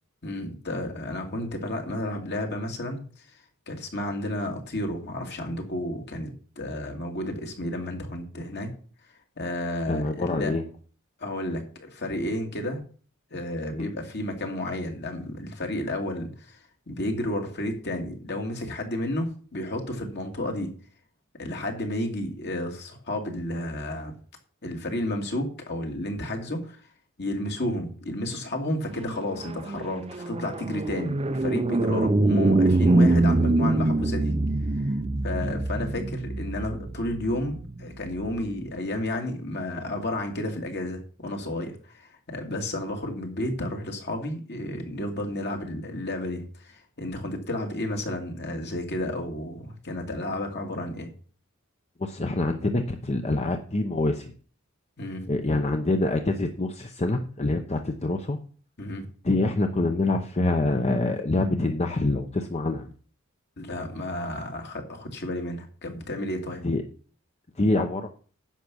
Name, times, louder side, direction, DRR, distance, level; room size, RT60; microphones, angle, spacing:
voice 1, 0.2-3.3 3.7-8.7 9.4-10.5 11.2-12.8 13.3-16.6 16.9-20.7 21.4-24.1 24.6-26.8 27.2-34.3 34.8-34.9 35.2-51.1 55.0-55.3 58.8-59.1 63.6-66.6, left 1 dB, 55° left, 3 dB, 2.4 m, -32 dB
voice 2, 9.9-10.6 13.7-13.9 52.0-54.3 55.3-58.4 59.2-62.9 66.6-66.8 67.6-68.1, left 2 dB, 30° left, 6 dB, 0.8 m, -25 dB
sound 1, 29.1-38.6, right 2 dB, 30° right, 0.5 m, -24 dB
10.0 x 7.0 x 6.2 m, 0.42 s
head